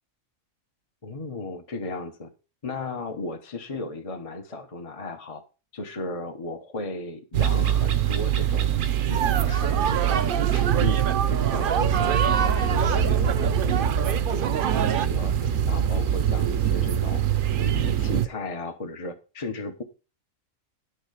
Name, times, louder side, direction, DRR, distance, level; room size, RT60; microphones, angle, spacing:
voice 1, 1.0-2.3 2.6-5.4 5.7-8.7 9.1-11.0 11.3-14.7 15.0-17.2 17.5-19.8, left 3 dB, 30° left, 4 dB, 1.1 m, -36 dB
sound 1, 7.3-18.3, right 9 dB, 75° right, 1.2 m, -24 dB
sound 2, 9.1-15.1, right 8 dB, 55° right, 0.6 m, -28 dB
10.5 x 6.6 x 5.0 m, 0.33 s
omnidirectional pair, 1.4 m